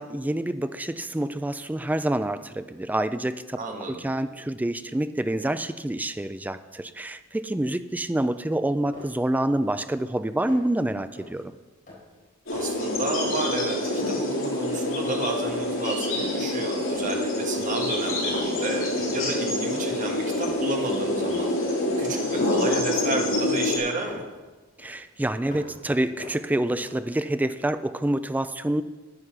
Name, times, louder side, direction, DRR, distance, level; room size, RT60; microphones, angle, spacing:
voice 1, 0.0-3.6 3.9-11.5 24.8-28.8, right 1 dB, 10° right, 12 dB, 0.3 m, -27 dB
voice 2, 3.6-4.0 12.5-21.5 22.0-24.2, right 2 dB, 40° right, 2 dB, 1.6 m, -32 dB
sound 1, 8.9-9.3 9.6-10.0 10.3-10.8 11.2-11.5 11.9-13.7 14.0-15.1 15.4-16.5 16.9-17.2 17.6-18.0 18.3-19.3 19.8-20.2 20.5-21.5 21.9-24.4 24.8-25.9 26.2-27.2, left 2 dB, 40° left, 4.4 m, -45 dB
sound 2, 12.5-23.8, left 1 dB, 90° left, 3.2 m, -26 dB
9.8 x 9.8 x 6.0 m, 1.2 s
head